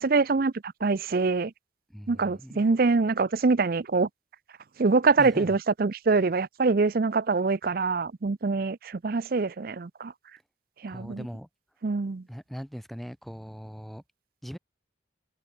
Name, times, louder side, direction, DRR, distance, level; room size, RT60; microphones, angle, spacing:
voice 1, 0.0-1.5 2.1-4.1 4.8-10.1 10.8-11.3 11.8-12.2, right 4 dB, 50° right, 0.5 m, -24 dB
voice 2, 1.9-2.7 5.2-5.5 10.9-11.5 12.3-14.0 14.4-14.6, equal, ahead, 1.5 m, -40 dB
head